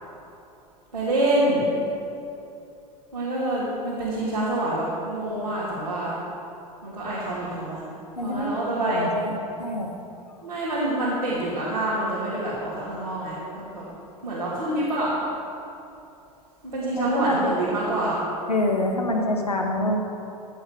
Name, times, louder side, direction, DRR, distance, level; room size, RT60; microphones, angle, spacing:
voice 1, 0.9-1.7 3.1-6.2 6.8-7.9 8.2-9.1 10.4-13.9 14.2-15.2 16.7-18.2, right 1 dB, 90° right, -10 dB, 2.4 m, -26 dB
voice 2, 8.2-9.3 9.6-9.9 16.9-17.4 18.5-20.0, left 1 dB, 90° left, 1 dB, 1.4 m, -26 dB
14.0 x 7.9 x 5.0 m, 2.7 s
figure-of-eight pair, 80°, 19 cm